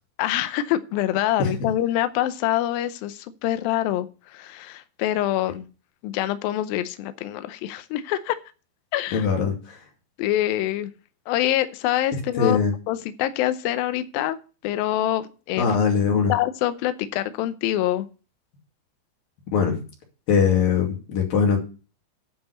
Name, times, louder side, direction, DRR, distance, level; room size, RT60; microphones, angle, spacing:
voice 1, 0.2-4.1 4.3-5.7 6.0-8.4 8.9-9.3 10.2-10.9 11.3-12.6 12.9-14.4 14.6-15.7 16.3-18.1, left 13 dB, 90° left, 12 dB, 2.0 m, -25 dB
voice 2, 9.1-9.8 12.4-12.7 15.6-16.3 19.5-19.8 20.3-21.6, left 6 dB, 55° left, 1 dB, 4.0 m, -21 dB
10.0 x 5.6 x 8.2 m, 0.35 s
omnidirectional pair, 5.1 m